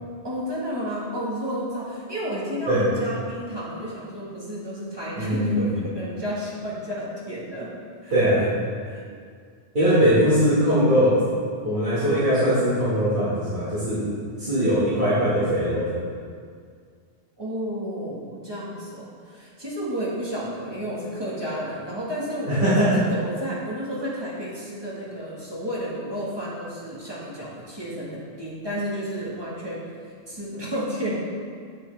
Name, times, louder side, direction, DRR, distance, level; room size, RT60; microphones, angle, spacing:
voice 1, 0.2-7.7 8.0-8.2 8.8-9.0 17.4-22.7 23.0-31.2, equal, 20° right, -7 dB, 1.6 m, -31 dB
voice 2, 5.2-5.7 8.1-8.5 9.7-11.2 11.6-14.0 14.4-16.0 22.5-23.0, equal, 45° right, -13 dB, 2.0 m, -21 dB
7.7 x 7.0 x 3.4 m, 2.1 s
omnidirectional pair, 1.2 m